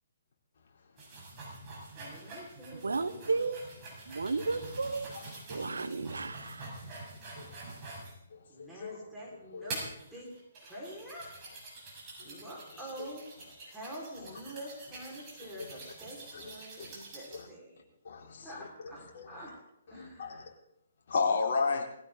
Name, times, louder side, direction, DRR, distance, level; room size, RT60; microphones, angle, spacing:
sound 1, 1.0-8.2 8.7-8.8 9.7-17.4, right 2 dB, 25° right, 6.8 m, -46 dB
voice 1, 2.0-3.4 8.5-10.3 10.6-11.4 12.2-13.3 13.7-17.8 18.4-19.6 19.9-20.5, right 1 dB, 5° right, -5 dB, 5.3 m, -46 dB
voice 2, 2.7-3.6 4.0-5.1 5.5-6.8, right 3 dB, 75° right, 12 dB, 1.2 m, -33 dB
voice 3, 8.6-9.0 9.5-9.7 12.3-12.4 17.3-17.4 18.0-18.5 19.1-19.3 20.0-20.4 21.1-21.8, left 4 dB, 55° left, -1 dB, 3.9 m, -32 dB
20.5 x 16.0 x 4.1 m, 0.76 s
figure-of-eight pair, 130°, 0 cm